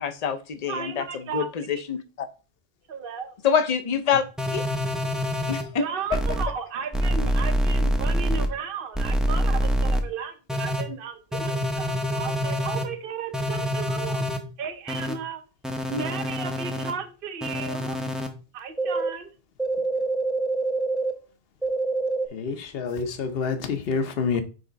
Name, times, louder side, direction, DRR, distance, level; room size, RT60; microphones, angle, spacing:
voice 1, 0.0-2.3 3.4-4.2 4.5-4.7 5.5-6.2, left 7 dB, 45° left, 0.7 m, -26 dB
voice 2, 0.7-1.5 2.9-3.3 5.8-14.3 14.6-15.4 15.9-18.0 18.5-19.3, right 6 dB, 55° right, 1.0 m, -34 dB
sound 1, 4.4-5.6 6.1-6.4 6.9-8.5 8.9-10.0 10.5-10.8 11.3-12.8 13.3-14.4 14.9-15.1 15.6-16.9 17.4-18.3 18.8-19.1 19.6-21.1 21.6-22.3, equal, ahead, 0.6 m, -26 dB
voice 3, 22.3-24.4, left 5 dB, 65° left, 1.0 m, -27 dB
5.2 x 3.6 x 5.0 m
omnidirectional pair, 1.1 m